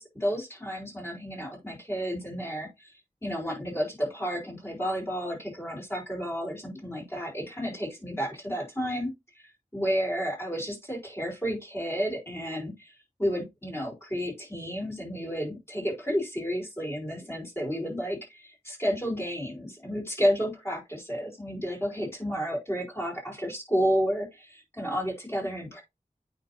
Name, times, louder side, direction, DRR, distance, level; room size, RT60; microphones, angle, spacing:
voice 1, 0.0-2.9 3.2-9.1 9.3-9.4 9.7-25.8, equal, 15° left, 0 dB, 4.4 m, -31 dB
8.8 x 5.5 x 2.8 m, 0.21 s
wide cardioid pair, 70°, 15 cm